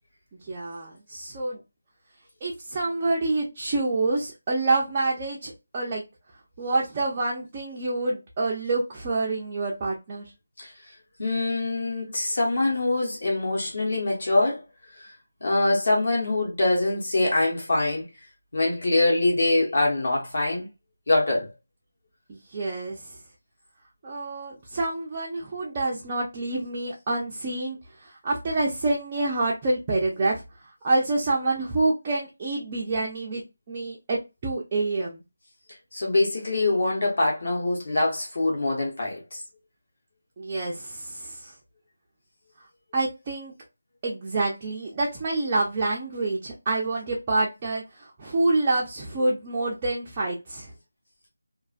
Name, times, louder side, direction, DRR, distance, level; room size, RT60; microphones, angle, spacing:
voice 1, 0.4-1.6 2.4-6.0 6.6-10.2 22.3-23.2 24.0-30.4 30.8-35.2 40.4-41.5 42.9-43.5 44.0-50.7, right 2 dB, 15° right, 0.4 m, -27 dB
voice 2, 11.2-14.6 15.0-15.1 15.4-18.0 18.5-20.7 21.1-21.5 35.9-39.4, left 2 dB, 50° left, 1.0 m, -24 dB
2.4 x 2.4 x 2.3 m
figure-of-eight pair, 175°, 0 cm